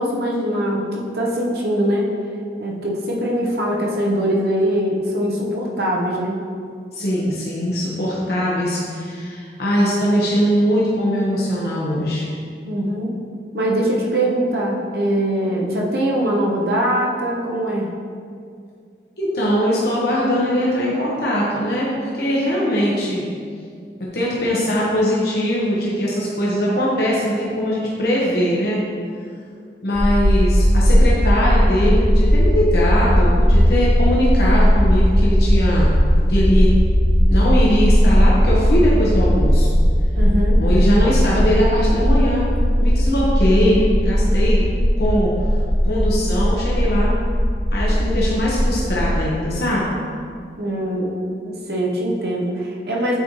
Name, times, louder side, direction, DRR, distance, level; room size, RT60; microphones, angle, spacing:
voice 1, 0.0-2.1 2.6-6.4 12.6-13.1 13.5-17.9 40.2-40.6 50.6-53.2, right 1 dB, 65° right, -2 dB, 0.9 m, -22 dB
voice 2, 6.9-12.3 19.2-23.2 24.1-28.8 29.8-35.9 36.3-36.7 37.3-39.7 40.6-42.4 42.8-44.7 45.0-45.6 45.8-47.1 47.7-49.9, equal, 65° left, -6 dB, 1.1 m, -21 dB
sound 1, 29.9-49.2, equal, 25° left, 1.0 m, -17 dB
9.1 x 4.3 x 3.1 m, 2.2 s
head